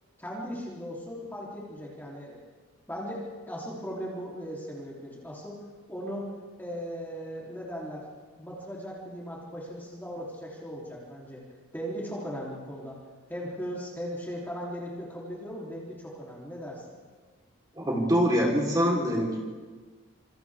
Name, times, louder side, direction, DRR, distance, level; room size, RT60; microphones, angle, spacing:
voice 1, 0.2-2.4 2.9-5.6 5.9-6.3 6.6-8.0 8.4-11.4 11.7-13.0 13.3-16.8, equal, 10° left, -5 dB, 3.3 m, -38 dB
voice 2, 17.8-19.4, equal, 15° right, -2 dB, 3.9 m, -24 dB
27.5 x 27.0 x 3.6 m, 1.4 s
head